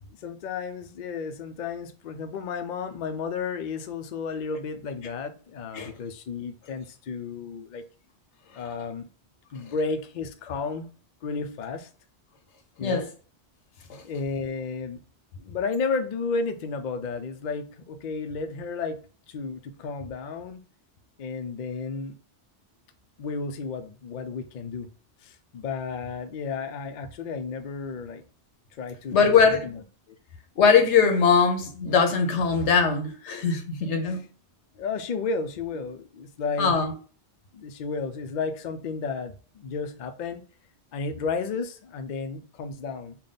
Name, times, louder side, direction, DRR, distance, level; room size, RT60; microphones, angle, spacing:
voice 1, 0.0-7.8 8.5-9.1 9.5-10.9 11.2-11.9 12.8-13.1 14.0-15.0 15.4-19.0 19.3-20.6 21.2-22.2 23.2-24.9 25.2-28.2 28.7-29.8 34.0-34.2 34.8-36.8 37.5-40.4 40.9-43.2, left 4 dB, 55° left, 0.5 m, -32 dB
voice 2, 29.1-29.6 30.6-34.2 36.6-36.9, left 6 dB, 85° left, 1.1 m, -21 dB
3.5 x 2.3 x 3.9 m
omnidirectional pair, 1.2 m